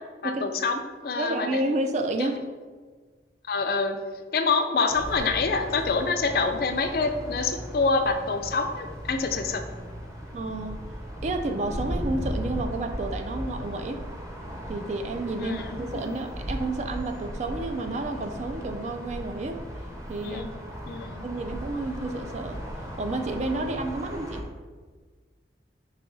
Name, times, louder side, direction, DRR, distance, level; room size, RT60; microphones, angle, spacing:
voice 1, 0.2-1.6 2.2-2.3 3.5-4.0 4.3-9.6 15.4-15.8 20.2-20.5 20.9-21.2, left 4 dB, 55° left, 6 dB, 0.4 m, -26 dB
voice 2, 1.2-2.4 10.3-10.8 11.2-14.1 14.7-19.7 20.1-20.4 21.2-22.6 23.0-24.4, right 2 dB, 40° right, 6 dB, 0.3 m, -30 dB
sound 1, 4.9-24.4, equal, 15° right, 0.7 m, -37 dB
4.9 x 2.8 x 3.9 m, 1.5 s
head